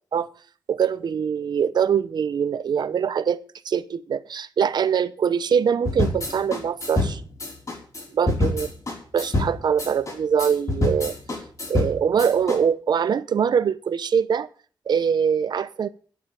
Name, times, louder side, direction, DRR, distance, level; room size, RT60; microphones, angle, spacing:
voice 1, 0.7-7.2 8.2-8.7 9.1-11.2 11.7-14.5 14.9-15.9, right 7 dB, 60° right, 14 dB, 0.9 m, -23 dB
sound 1, 5.9-12.6, left 2 dB, 40° left, 5.5 m, -26 dB
9.7 x 8.7 x 9.2 m, 0.43 s
wide cardioid pair, 120°, 8 cm